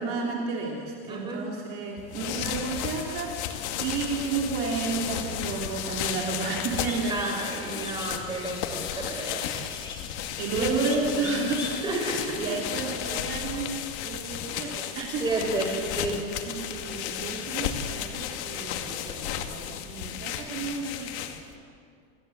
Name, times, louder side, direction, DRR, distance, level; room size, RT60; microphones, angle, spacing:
voice 1, 0.0-7.3 7.8-8.0 8.2-8.5 10.4-13.7 14.0-15.2 15.6-15.8 16.4-21.1, right 4 dB, 40° right, -1 dB, 3.3 m, -32 dB
voice 2, 1.1-1.5 7.1-9.5 10.5-10.9 11.2-11.4 11.8-12.4 15.2-16.2, right 2 dB, 15° right, 0 dB, 4.3 m, -31 dB
sound 1, 2.0-21.6, left 10 dB, 80° left, 2.1 m, -34 dB
sound 2, 6.6-12.3, left 3 dB, 15° left, 2.7 m, -42 dB
28.0 x 16.5 x 8.0 m, 2.4 s
cardioid pair, 165°, 33 cm